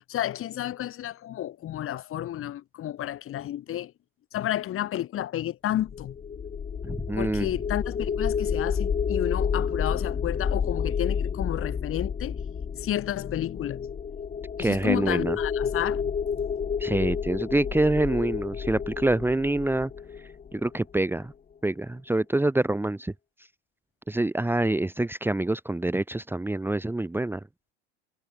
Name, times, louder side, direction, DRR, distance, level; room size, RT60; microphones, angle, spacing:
voice 1, 0.1-3.9 4.3-6.2 7.2-12.3 12.8-13.9 14.6-16.4, left 12 dB, 40° left, 3.5 m, -31 dB
sound 1, 5.8-20.9, left 7 dB, 25° left, 2.4 m, -30 dB
voice 2, 6.8-7.5 14.6-15.4 16.8-19.9 20.5-21.3 21.6-23.1 24.1-27.4, right 2 dB, 5° right, 1.6 m, -26 dB
hypercardioid pair, 80°, 32 cm